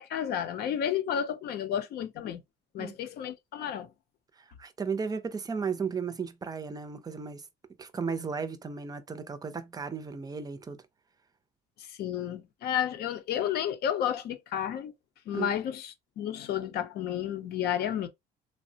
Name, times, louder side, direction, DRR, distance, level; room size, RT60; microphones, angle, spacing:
voice 1, 0.0-2.4 2.7-3.9 11.8-14.9 15.3-18.1, left 9 dB, 70° left, 0.6 m, -32 dB
voice 2, 4.6-7.4 7.8-10.8 15.3-15.5, right 5 dB, 20° right, 0.5 m, -34 dB
3.2 x 2.0 x 2.7 m
cardioid pair, 110°, 17 cm